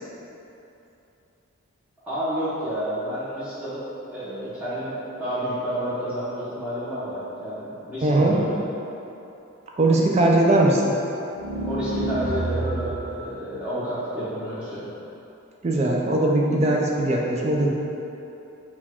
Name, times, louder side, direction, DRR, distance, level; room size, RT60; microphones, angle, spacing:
voice 1, 2.0-3.8 4.1-4.9 5.2-8.6 11.7-14.9, equal, 5° right, -14 dB, 0.8 m, -30 dB
voice 2, 8.0-8.3 9.8-10.8 15.6-17.7, right 2 dB, 30° right, -2 dB, 0.4 m, -20 dB
sound 1, 11.4-13.2, right 2 dB, 75° right, 0.6 m, -28 dB
4.3 x 2.3 x 4.3 m, 2.9 s
head